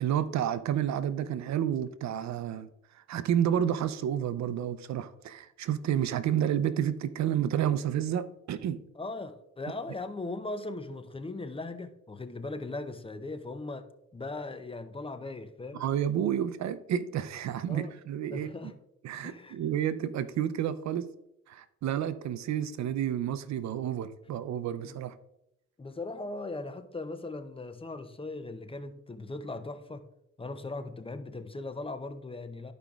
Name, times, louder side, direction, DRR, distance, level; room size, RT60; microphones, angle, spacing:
voice 1, 0.0-2.7 2.9-8.8 15.7-18.7 19.0-21.1 21.5-25.1, right 10 dB, 65° right, 0.6 m, -30 dB
voice 2, 8.9-15.8 17.7-17.9 18.3-18.7 19.2-19.6 24.8-25.0 25.8-30.1 30.4-32.7, left 2 dB, 20° left, 0.6 m, -39 dB
13.5 x 5.1 x 2.4 m
cardioid pair, 90°, 30 cm